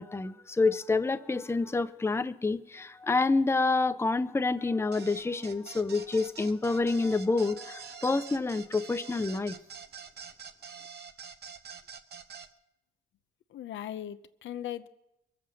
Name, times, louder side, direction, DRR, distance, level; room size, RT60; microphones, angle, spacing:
voice 1, 0.0-9.5, left 3 dB, 10° left, 11 dB, 0.7 m, -28 dB
sound 1, 4.9-12.5, right 6 dB, 55° right, 1.1 m, -46 dB
voice 2, 13.5-14.9, left 11 dB, 70° left, 12 dB, 0.8 m, -38 dB
22.5 x 7.7 x 6.4 m, 0.86 s
cardioid pair, 90°, 20 cm